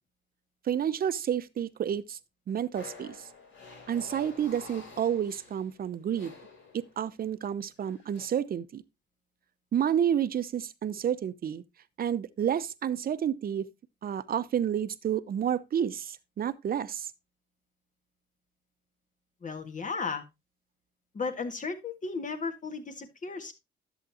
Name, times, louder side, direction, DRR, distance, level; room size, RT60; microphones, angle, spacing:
voice 1, 0.6-2.2 2.5-3.2 3.9-6.4 6.7-8.8 9.7-11.6 12.0-13.7 14.0-17.1, right 9 dB, 50° right, 0.7 m, -30 dB
sound 1, 2.7-7.2 7.9-8.3, left 4 dB, 75° left, 3.6 m, -49 dB
voice 2, 19.4-20.2 21.1-23.5, left 4 dB, 40° left, 1.7 m, -35 dB
11.0 x 7.5 x 2.7 m
cardioid pair, 90°, 20 cm